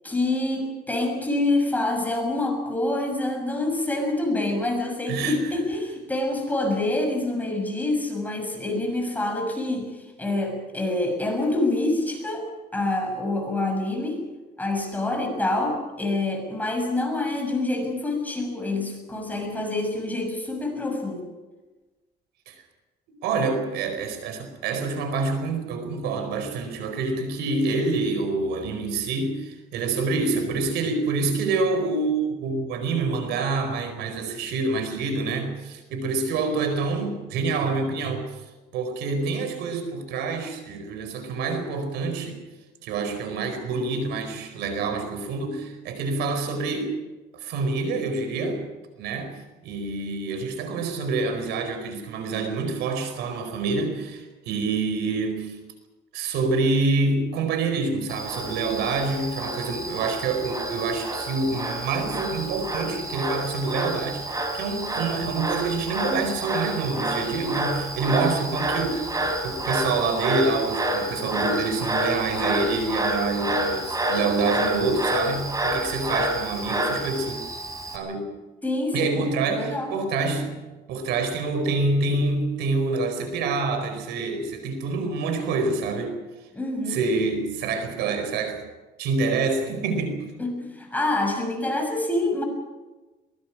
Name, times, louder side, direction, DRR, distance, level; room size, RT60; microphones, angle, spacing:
voice 1, 0.0-9.9 10.2-12.5 12.7-14.2 14.6-21.3 78.6-79.9 86.5-87.0 90.4-92.4, left 2 dB, 10° left, 2 dB, 6.5 m, -26 dB
voice 2, 5.1-5.4 22.5-22.6 23.1-38.4 38.7-42.4 42.8-46.9 47.3-48.6 49.0-49.4 49.6-55.6 56.1-77.4 77.9-78.3 78.9-80.6 80.9-86.2 86.9-88.6 89.0-90.3, right 3 dB, 85° right, 7 dB, 4.7 m, -27 dB
Frog, 58.1-78.0, right 1 dB, 20° right, 4.4 m, -29 dB
23.0 x 21.5 x 6.1 m, 1.2 s
cardioid pair, 110°, 17 cm